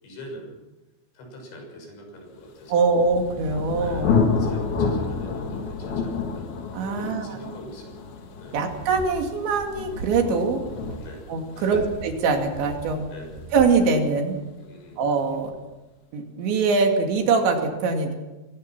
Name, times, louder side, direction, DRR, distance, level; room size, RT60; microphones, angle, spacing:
voice 1, 0.0-0.6 1.1-2.9 3.8-6.5 6.9-8.1 8.4-8.6 11.0-11.9 13.1-13.4 14.6-15.0 15.3-15.4, equal, 80° left, 2 dB, 8.6 m, -43 dB
Thunder, 2.7-14.3, left 5 dB, 60° left, 3.9 m, -29 dB
voice 2, 2.7-4.2 6.7-7.4 8.5-10.6 11.3-13.1 13.5-14.4 15.0-15.5 16.1-18.2, right 4 dB, 85° right, 3 dB, 4.8 m, -23 dB
sound 1, 8.7-10.3 10.6-11.1 11.6-13.9, right 4 dB, 55° right, 2.7 m, -40 dB
23.5 x 19.0 x 6.1 m, 1.1 s
omnidirectional pair, 5.1 m